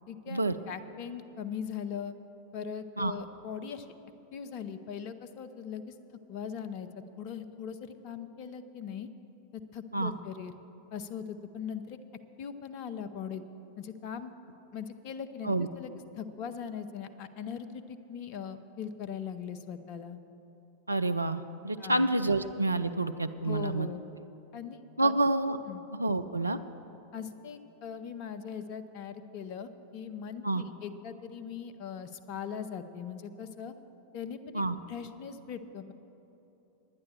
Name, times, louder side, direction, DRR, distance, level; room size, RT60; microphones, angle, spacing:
voice 1, 0.1-2.1 2.5-3.9 4.3-5.9 6.3-6.9 7.2-9.1 9.5-10.5 10.9-12.0 12.4-13.4 13.8-14.3 14.7-20.2 21.8-22.1 23.4-24.0 24.5-25.1 25.7-25.8 27.1-33.7 34.1-34.6 34.9-35.9, left 7 dB, 45° left, 10 dB, 0.6 m, -40 dB
voice 2, 20.9-23.9 25.0-25.6 25.9-26.6 30.4-30.6 34.5-34.7, right 2 dB, 85° right, 9 dB, 0.3 m, -28 dB
10.5 x 9.6 x 7.1 m, 3.0 s
figure-of-eight pair, 90°, 0 cm